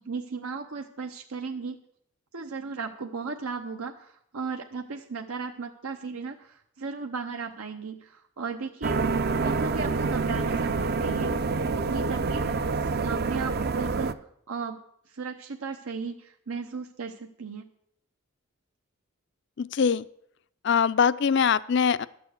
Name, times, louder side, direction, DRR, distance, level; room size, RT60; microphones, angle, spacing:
voice 1, 0.1-1.8 2.3-9.0 9.4-11.3 11.7-12.4 12.8-14.1 14.5-14.8 15.1-17.6, right 5 dB, 90° right, 4 dB, 0.8 m, -36 dB
sound 1, 8.8-14.1, right 4 dB, 45° right, 0.5 m, -27 dB
voice 2, 19.6-20.1 20.6-22.1, left 6 dB, 55° left, 17 dB, 0.4 m, -22 dB
12.5 x 6.9 x 8.0 m, 0.72 s
head